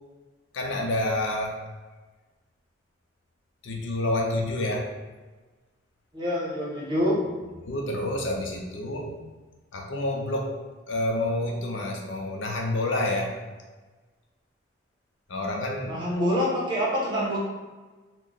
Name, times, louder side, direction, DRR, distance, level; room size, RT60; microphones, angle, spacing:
voice 1, 0.5-1.6 3.6-4.9 7.6-9.2 9.7-10.6 10.9-13.4 15.3-16.4, left 1 dB, 80° left, 1 dB, 0.6 m, -28 dB
voice 2, 6.1-7.2 15.9-17.4, equal, 25° right, -5 dB, 0.8 m, -26 dB
3.1 x 2.2 x 3.8 m, 1.3 s
head